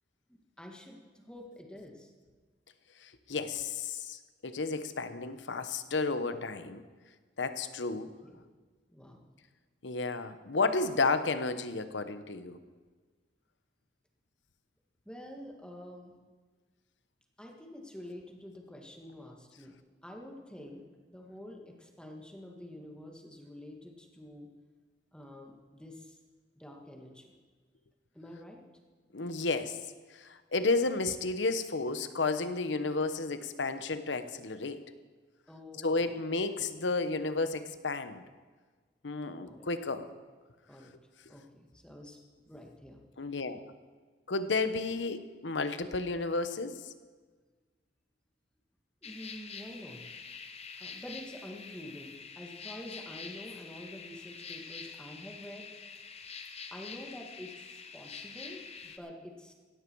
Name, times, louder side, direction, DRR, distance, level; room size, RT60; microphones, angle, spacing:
voice 1, 0.3-2.1 7.9-8.4 8.9-9.3 15.1-16.1 17.4-19.8 20.0-24.5 25.1-26.2 26.6-27.3 28.1-28.6 35.5-36.1 39.3-39.7 40.0-40.1 40.7-40.9 41.3-42.2 42.4-43.0 49.0-50.2 50.8-55.7 56.7-59.5, left 1 dB, 5° left, 1 dB, 1.9 m, -48 dB
voice 2, 3.0-6.8 7.4-8.1 9.8-12.6 29.1-29.8 30.1-34.8 35.8-38.2 39.0-40.1 43.2-43.6 44.3-46.8, left 3 dB, 90° left, 11 dB, 1.0 m, -32 dB
sound 1, 49.0-59.0, left 6 dB, 35° left, 1.0 m, -46 dB
17.0 x 12.5 x 4.7 m, 1.4 s
head